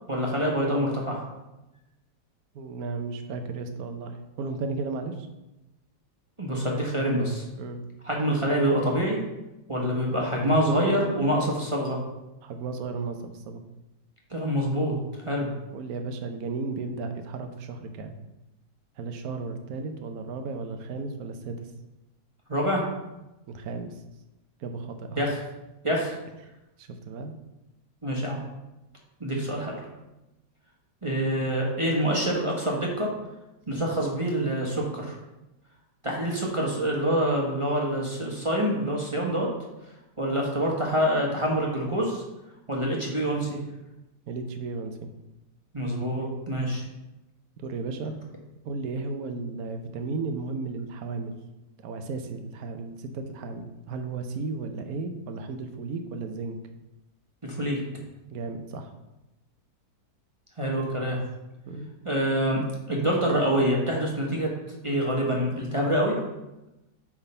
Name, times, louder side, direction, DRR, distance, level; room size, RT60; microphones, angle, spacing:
voice 1, 0.1-1.2 6.4-7.4 8.0-9.2 9.7-12.0 14.3-15.0 15.2-15.5 22.5-22.8 25.2-25.4 25.8-26.1 28.0-28.4 29.2-29.8 31.0-33.1 33.7-35.1 36.0-39.5 40.2-42.2 42.7-43.6 45.7-46.8 57.4-58.0 60.6-61.2 62.0-62.6 62.9-64.5 64.8-66.2, equal, 20° right, -3 dB, 1.2 m, -26 dB
voice 2, 2.5-5.3 7.6-7.8 12.4-13.6 15.7-18.1 19.0-21.7 23.5-24.0 24.6-25.3 26.8-27.3 44.3-45.1 47.6-48.2 48.6-51.4 51.8-56.6 58.3-58.9 61.7-61.9, right 4 dB, 60° right, 7 dB, 1.2 m, -34 dB
9.0 x 3.7 x 5.5 m, 0.98 s
omnidirectional pair, 1.9 m